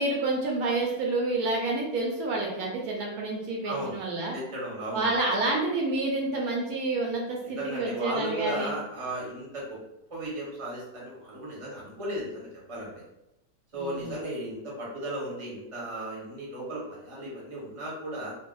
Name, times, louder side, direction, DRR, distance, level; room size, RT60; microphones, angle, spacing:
voice 1, 0.0-4.3 4.9-8.7 13.7-14.2, right 2 dB, 70° right, -1 dB, 1.0 m, -29 dB
voice 2, 3.6-4.0 4.3-5.1 7.4-9.8 10.1-12.9 13.7-18.3, right 1 dB, 25° right, -4 dB, 0.7 m, -35 dB
2.6 x 2.2 x 3.7 m, 0.91 s
omnidirectional pair, 1.7 m